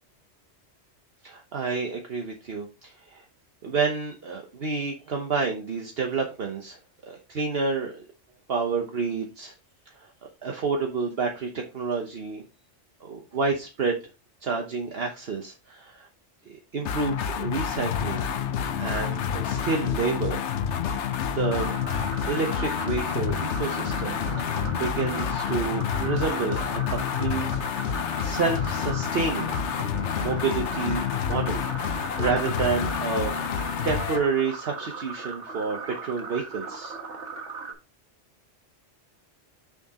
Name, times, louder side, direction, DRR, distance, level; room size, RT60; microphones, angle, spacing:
voice 1, 1.2-3.2 3.6-6.8 7.1-8.0 8.5-9.5 10.0-10.1 10.4-12.4 13.0-14.0 14.4-16.1 16.5-18.3 18.7-20.4 21.3-21.7 22.2-27.5 28.2-29.5 29.8-29.9 30.2-33.3 33.8-37.0, right 4 dB, 60° right, 3 dB, 1.2 m, -29 dB
sound 1, 16.9-34.3, left 8 dB, 80° left, 1.0 m, -28 dB
sound 2, 21.4-37.7, right 4 dB, 80° right, 1.8 m, -39 dB
6.9 x 6.0 x 2.9 m, 0.29 s
omnidirectional pair, 1.2 m